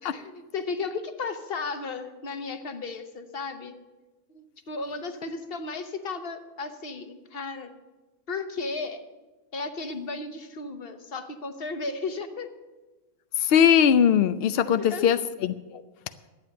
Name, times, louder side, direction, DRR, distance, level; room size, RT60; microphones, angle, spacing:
voice 1, 0.0-3.7 4.3-7.7 8.3-9.0 9.5-12.5 14.7-15.2, left 4 dB, 45° left, 8 dB, 1.1 m, -34 dB
voice 2, 13.4-15.8, left 8 dB, 75° left, 12 dB, 0.5 m, -21 dB
11.5 x 8.5 x 9.1 m, 1.2 s
omnidirectional pair, 1.6 m